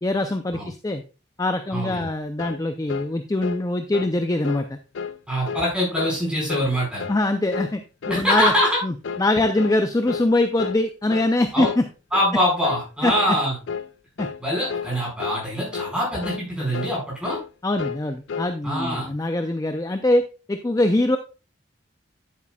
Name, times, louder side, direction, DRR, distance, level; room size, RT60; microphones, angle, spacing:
voice 1, 0.0-1.0 1.4-4.8 7.1-8.5 8.8-11.8 13.0-13.1 14.2-14.3 17.6-20.2 20.5-21.2, left 2 dB, 20° left, 7 dB, 0.4 m, -23 dB
voice 2, 1.7-2.1 5.3-7.0 8.1-8.8 11.5-11.7 12.1-13.5 14.4-17.4 18.6-19.1, equal, 5° right, -4 dB, 4.6 m, -23 dB
sound 1, 2.4-2.6 2.9-3.1 3.4-3.6 3.9-4.2 4.4-4.7 5.0-5.2 5.5-5.7 6.0-6.2 6.5-6.7 7.0-7.2 7.5-7.8 8.0-8.3 8.5-8.8 9.0-9.3 9.6-9.8 10.1-10.3 10.6-10.8 11.1-11.3 11.6-11.8 12.1-12.3 12.6-12.9 13.1-13.4 13.7-13.9 14.2-14.4 14.7-14.9 15.2-15.4 15.7-16.0 16.2-16.5 16.7-17.0 17.2-17.5 17.8-18.0 18.3-18.5, left 6 dB, 75° left, 0.4 m, -32 dB
9.9 x 8.2 x 2.3 m, 0.33 s
head